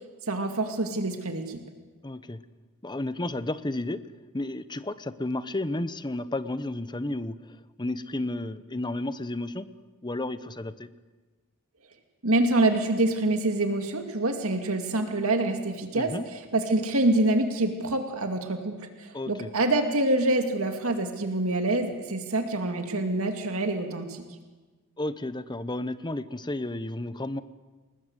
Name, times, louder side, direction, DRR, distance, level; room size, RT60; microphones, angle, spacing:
voice 1, 0.3-1.6 12.2-16.1 16.5-24.2, right 2 dB, 70° right, 5 dB, 2.3 m, -26 dB
voice 2, 2.0-2.4 2.8-4.0 4.3-9.7 10.0-10.9 15.9-16.2 19.1-19.5 25.0-27.4, left 2 dB, 20° left, 13 dB, 1.0 m, -32 dB
29.5 x 20.5 x 8.2 m, 1.3 s
head